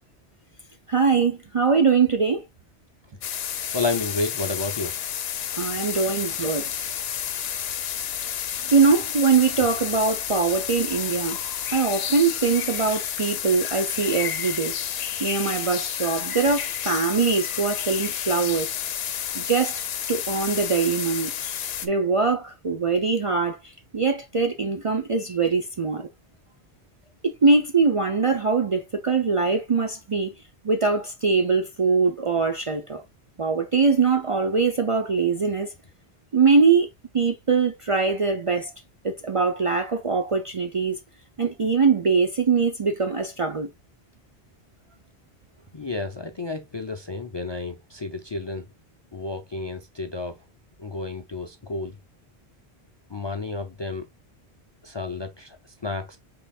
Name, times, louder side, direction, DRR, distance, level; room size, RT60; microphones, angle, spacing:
voice 1, 0.9-2.4 5.5-6.7 8.6-11.4 11.7-14.7 15.2-18.7 19.3-19.8 20.1-21.3 21.8-26.1 27.2-30.3 30.6-33.0 33.4-35.7 36.3-36.9 37.1-38.7 39.0-41.0 41.4-43.7, right 4 dB, 45° right, 0.5 m, -22 dB
sound 1, 3.2-21.9, left 9 dB, 70° left, 0.8 m, -30 dB
voice 2, 3.7-4.9 6.0-6.1 45.7-48.7 49.1-50.4 50.8-52.0 53.1-54.1 54.8-55.6 55.8-56.2, left 3 dB, 35° left, 0.4 m, -31 dB
5.5 x 3.8 x 2.3 m
omnidirectional pair, 1.1 m